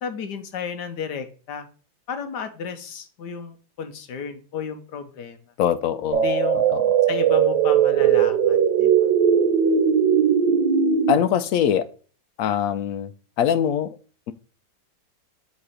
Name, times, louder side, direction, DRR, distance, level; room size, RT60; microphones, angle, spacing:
voice 1, 0.0-1.7 2.1-5.4 6.2-6.7 7.1-8.9 11.2-11.3, left 6 dB, 65° left, 1.4 m, -33 dB
voice 2, 5.6-6.3 6.7-7.1 11.1-11.9 12.4-13.1 13.4-14.0, left 9 dB, 85° left, 0.7 m, -22 dB
sound 1, 6.1-11.1, right 7 dB, 80° right, 1.7 m, -19 dB
7.1 x 4.2 x 4.9 m
omnidirectional pair, 2.0 m